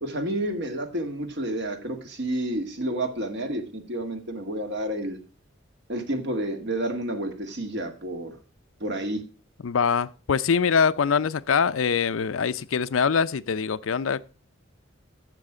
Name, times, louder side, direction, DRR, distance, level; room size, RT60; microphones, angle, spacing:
voice 1, 0.0-5.2 5.9-8.4 8.8-9.2, right 1 dB, 60° right, 1.9 m, -30 dB
voice 2, 9.6-14.3, left 6 dB, 90° left, 0.5 m, -23 dB
12.0 x 7.6 x 4.9 m
head